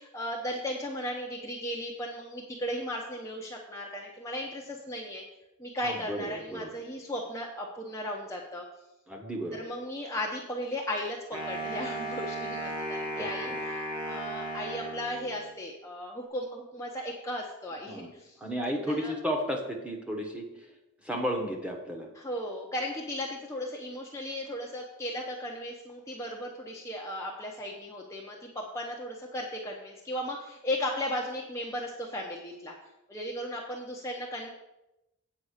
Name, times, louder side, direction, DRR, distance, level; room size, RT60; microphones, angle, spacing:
voice 1, 0.0-5.2 5.6-8.6 9.5-18.4 18.9-19.1 22.2-32.7 33.1-34.5, left 1 dB, 15° left, -2 dB, 0.8 m, -36 dB
voice 2, 5.8-6.7 9.1-9.6 13.1-13.6 17.9-18.1 18.4-20.5 21.0-22.1, equal, 5° right, 1 dB, 1.1 m, -33 dB
Wind instrument woodwind instrument, 11.3-15.6, right 1 dB, 20° right, 1.4 m, -35 dB
8.7 x 5.2 x 6.4 m, 0.94 s
head